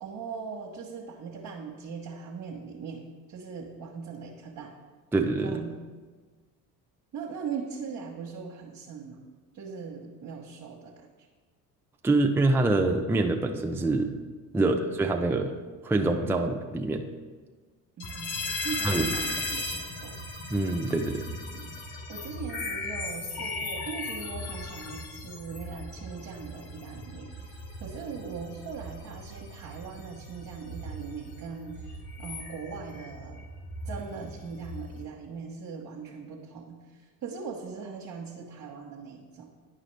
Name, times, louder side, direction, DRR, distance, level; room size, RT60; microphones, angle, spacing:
voice 1, 0.0-3.0 3.3-4.7 5.4-5.8 7.1-9.3 9.5-11.1 14.6-14.9 18.0-20.2 21.5-21.7 22.1-33.5 33.8-39.5, right 5 dB, 45° right, -3 dB, 1.1 m, -40 dB
voice 2, 5.1-5.6 12.0-14.1 14.5-15.5 15.8-17.1 18.8-19.1 20.5-21.3, right 2 dB, 5° right, 3 dB, 0.5 m, -25 dB
sound 1, 18.0-35.0, left 2 dB, 80° left, 1.2 m, -37 dB
10.0 x 4.9 x 3.3 m, 1.4 s
hypercardioid pair, 60°, 47 cm